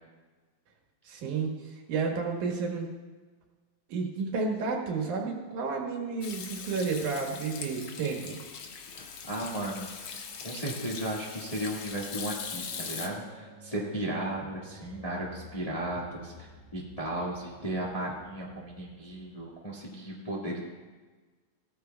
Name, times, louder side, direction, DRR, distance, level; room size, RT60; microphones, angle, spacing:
voice 1, 1.0-2.9 3.9-8.4, right 4 dB, 80° right, 1 dB, 3.0 m, -31 dB
Hands / Sink (filling or washing), 6.2-13.1, left 6 dB, 65° left, 1.3 m, -41 dB
voice 2, 8.9-9.9 10.4-20.6, right 1 dB, 15° left, -4 dB, 1.2 m, -35 dB
sound 1, 9.3-19.7, left 1 dB, 55° right, 2.0 m, -54 dB
17.5 x 13.5 x 2.3 m, 1.4 s
omnidirectional pair, 3.4 m